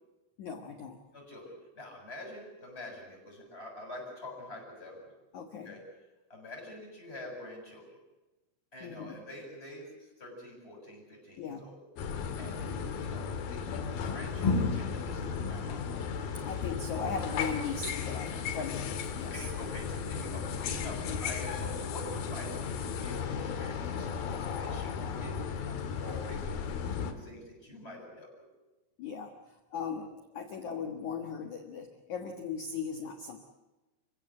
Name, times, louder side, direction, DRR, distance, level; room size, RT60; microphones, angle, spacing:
voice 1, 0.4-1.0 5.3-5.7 8.8-9.2 11.4-11.7 16.4-19.5 20.9-21.2 29.0-29.3 29.7-33.4, left 5 dB, 80° left, 6 dB, 1.7 m, -38 dB
voice 2, 1.1-5.0 5.6-5.8 6.3-7.9 8.7-11.8 12.4-16.5 18.3-18.4 19.3-24.1 24.4-26.6 26.9-28.4, left 1 dB, 10° left, -1 dB, 7.5 m, -46 dB
sound 1, 12.0-27.1, left 6 dB, 60° left, 2.9 m, -34 dB
29.5 x 16.0 x 8.0 m, 1.1 s
omnidirectional pair, 5.8 m